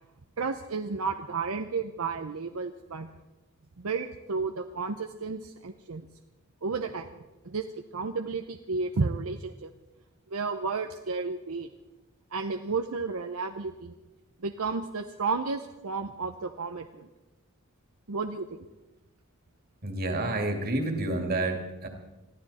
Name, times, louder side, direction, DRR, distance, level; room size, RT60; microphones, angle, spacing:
voice 1, 0.4-3.1 3.8-6.0 6.6-7.2 7.4-9.7 10.3-11.7 12.3-13.9 14.4-17.1 18.1-18.6, right 4 dB, 75° right, 6 dB, 0.7 m, -32 dB
voice 2, 19.8-21.9, right 2 dB, 45° right, 4 dB, 2.4 m, -29 dB
22.0 x 14.0 x 4.2 m, 1.1 s
head